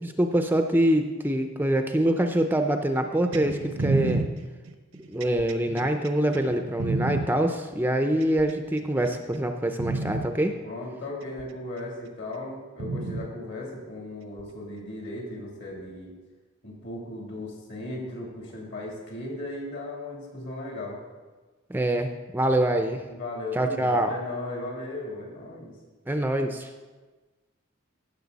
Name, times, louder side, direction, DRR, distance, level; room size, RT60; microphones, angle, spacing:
voice 1, 0.0-4.3 5.1-10.5 21.7-23.0 23.5-24.1 26.1-26.7, right 1 dB, 10° right, 5 dB, 0.5 m, -25 dB
sound 1, 3.3-7.3 8.2-8.9 9.3-9.5 9.8-10.3 11.4-11.5 12.8-13.3 14.4-14.5, right 2 dB, 80° right, 0.8 m, -30 dB
voice 2, 10.6-16.1 16.6-21.0 23.0-25.7, left 2 dB, 60° left, -2 dB, 3.0 m, -37 dB
16.5 x 6.7 x 4.0 m, 1.3 s
head